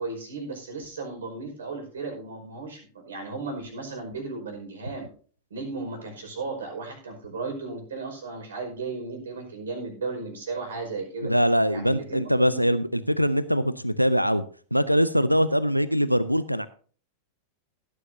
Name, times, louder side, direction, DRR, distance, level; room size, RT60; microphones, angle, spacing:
voice 1, 0.0-5.1 5.5-11.3 11.7-12.6, right 3 dB, 65° right, 3 dB, 5.1 m, -35 dB
voice 2, 11.2-14.4 14.7-16.7, equal, 90° right, 16 dB, 0.5 m, -22 dB
17.0 x 10.0 x 2.7 m, 0.42 s
figure-of-eight pair, 90°, 0 cm